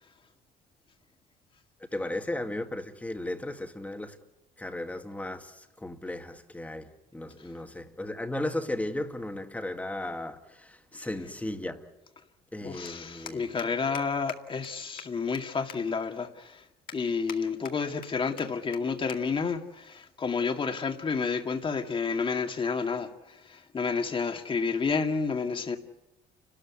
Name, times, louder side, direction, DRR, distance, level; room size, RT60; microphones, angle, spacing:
voice 1, 1.9-4.2 4.6-11.9 12.5-13.5, left 1 dB, 10° left, 2.0 m, -35 dB
voice 2, 12.6-16.6 16.9-25.8, left 5 dB, 30° left, 2.1 m, -30 dB
sound 1, 12.8-12.9 13.3-13.7 13.9-14.0 14.3-14.4 14.6-14.7 15.0-15.4 15.7-15.8 16.3-16.4 16.9-17.4 17.6-18.1 18.4-18.5 18.7-18.8 19.1-19.2 19.5-19.7 20.5-20.8, left 8 dB, 55° left, 2.1 m, -42 dB
30.0 x 13.5 x 9.7 m
cardioid pair, 110°, 17 cm